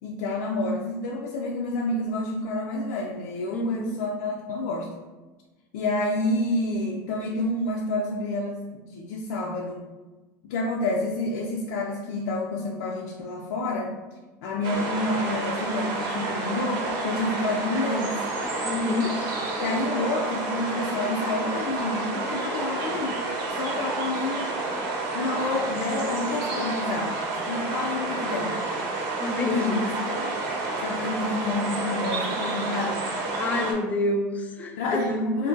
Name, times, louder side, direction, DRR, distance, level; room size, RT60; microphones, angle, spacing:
voice 1, 0.0-4.9 5.7-9.8 10.4-13.9 14.4-18.2 19.6-23.2 23.5-24.5 25.1-28.6 29.5-30.3 30.8-33.0 34.8-35.5, left 2 dB, 90° left, -1 dB, 0.4 m, -29 dB
voice 2, 3.5-4.0 18.6-19.2 29.2-29.9 33.3-35.2, left 2 dB, 15° left, 3 dB, 0.3 m, -27 dB
sound 1, 14.6-33.7, right 3 dB, 55° right, 0.7 m, -30 dB
2.6 x 2.1 x 3.6 m, 1.2 s
supercardioid pair, 150°, 9 cm